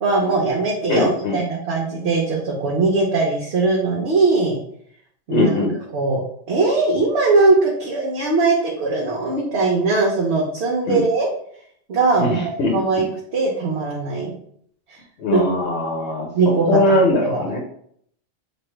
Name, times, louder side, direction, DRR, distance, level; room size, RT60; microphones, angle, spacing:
voice 1, 0.0-4.6 5.3-5.5 5.9-11.3 11.9-13.1 13.3-14.3 14.9-15.0 15.3-15.4 16.3-16.8 17.2-17.4, right 3 dB, 65° right, -4 dB, 1.0 m, -20 dB
voice 2, 0.9-1.4 5.3-5.7 10.9-11.0 12.2-12.7 15.2-17.6, left 2 dB, 70° left, -1 dB, 1.0 m, -20 dB
3.2 x 2.5 x 4.3 m, 0.65 s
omnidirectional pair, 1.2 m